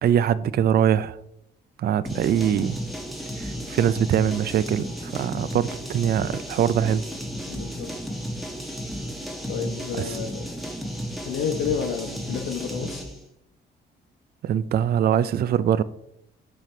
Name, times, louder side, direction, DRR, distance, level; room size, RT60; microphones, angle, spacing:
voice 1, 0.0-1.2 1.8-2.8 3.4-7.0 10.0-10.1 14.4-15.8, right 9 dB, 50° right, 0.4 m, -22 dB
sound 1, 2.1-13.2, equal, ahead, 1.4 m, -33 dB
voice 2, 7.5-7.9 9.5-10.5 11.2-13.1, left 7 dB, 70° left, 0.9 m, -30 dB
7.2 x 3.3 x 5.5 m
cardioid pair, 90°, 20 cm